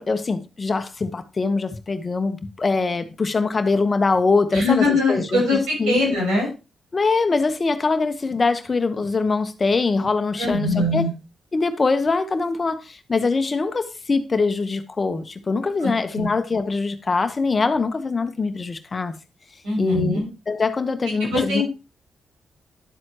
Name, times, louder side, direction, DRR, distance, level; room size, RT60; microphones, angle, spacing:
voice 1, 0.0-6.0 6.9-11.0 11.5-19.1 19.8-21.6, left 4 dB, 40° left, 1.2 m, -23 dB
voice 2, 4.5-6.5 10.4-11.1 15.8-16.3 19.6-20.3 21.1-21.6, left 2 dB, 85° right, 6.9 m, -22 dB
11.5 x 7.7 x 3.1 m
supercardioid pair, 50°, 0 cm